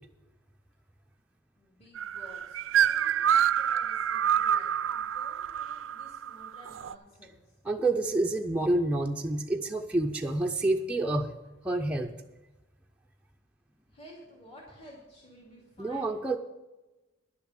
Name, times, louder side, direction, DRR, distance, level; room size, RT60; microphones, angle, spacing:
voice 1, 1.6-7.6 13.9-16.2, equal, 35° left, -3 dB, 2.4 m, -53 dB
sound 1, 2.0-6.9, right 9 dB, 85° right, 0.4 m, -27 dB
voice 2, 7.6-11.3 11.6-12.1 15.8-16.4, right 2 dB, 5° right, 1 dB, 0.5 m, -28 dB
10.5 x 7.0 x 7.7 m, 1.1 s
head